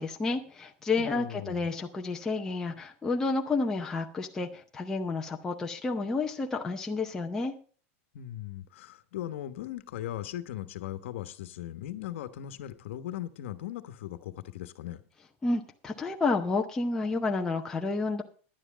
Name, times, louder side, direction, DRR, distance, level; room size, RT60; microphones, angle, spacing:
voice 1, 0.0-7.5 15.4-18.2, left 3 dB, 10° left, 0.7 m, -30 dB
voice 2, 1.0-1.7 8.1-15.0, left 12 dB, 65° left, 1.2 m, -38 dB
11.0 x 9.8 x 5.1 m
supercardioid pair, 175°, 7 cm